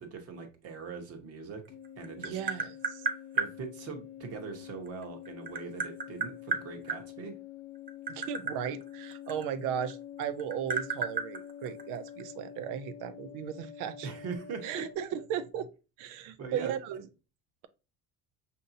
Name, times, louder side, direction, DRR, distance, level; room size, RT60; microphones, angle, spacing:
voice 1, 0.0-1.6 2.0-2.4 3.3-7.3 14.0-14.8 16.4-16.8, right 5 dB, 50° right, 1.1 m, -41 dB
sound 1, 1.7-15.0, left 10 dB, 45° left, 0.5 m, -47 dB
Tap, 1.7-3.5 4.9-7.0 7.8-9.9 10.2-12.2, right 5 dB, 25° right, 0.4 m, -33 dB
voice 2, 2.2-3.1 8.1-14.1 14.6-15.7 16.0-17.1, right 9 dB, 75° right, 0.6 m, -36 dB
5.2 x 2.7 x 2.6 m
cardioid pair, 115°, 32 cm